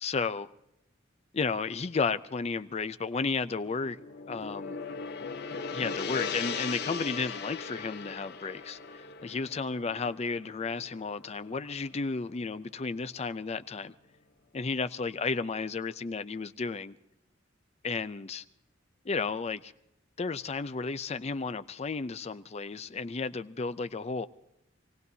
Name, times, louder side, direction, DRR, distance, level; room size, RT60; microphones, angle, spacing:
voice 1, 0.0-0.5 1.3-4.0 4.3-4.8 5.7-13.9 14.5-17.0 17.8-18.4 19.0-19.7 20.2-24.3, left 4 dB, 35° left, 0.5 m, -33 dB
Gong, 3.6-12.0, left 5 dB, 55° left, 0.8 m, -38 dB
27.0 x 17.5 x 2.7 m
head